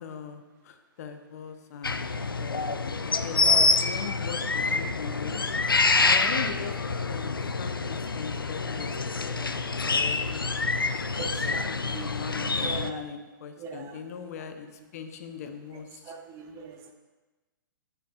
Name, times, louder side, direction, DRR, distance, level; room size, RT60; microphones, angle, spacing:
voice 1, 0.0-5.4 6.0-8.9 9.2-10.5 10.9-16.1, left 7 dB, 45° left, 7 dB, 0.8 m, -40 dB
sound 1, 1.8-12.9, left 4 dB, 80° left, 0.4 m, -27 dB
voice 2, 11.1-13.0 13.6-14.3 16.0-16.9, right 5 dB, 25° right, 3 dB, 0.9 m, -41 dB
10.0 x 7.1 x 2.4 m, 1.2 s
figure-of-eight pair, 115°, 11 cm